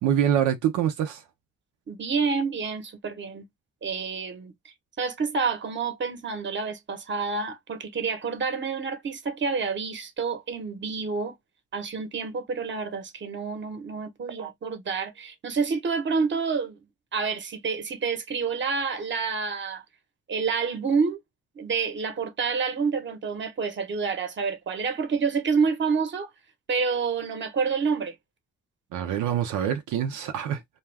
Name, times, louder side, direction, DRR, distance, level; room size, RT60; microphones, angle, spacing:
voice 1, 0.0-1.2 28.9-30.6, right 10 dB, 85° right, 0.6 m, -25 dB
voice 2, 1.9-3.4 3.8-11.3 11.7-16.8 17.1-19.8 20.3-21.2 21.6-26.3 26.7-28.2, right 5 dB, 40° right, 1.0 m, -28 dB
2.4 x 2.3 x 3.2 m
cardioid pair, 90°, 30 cm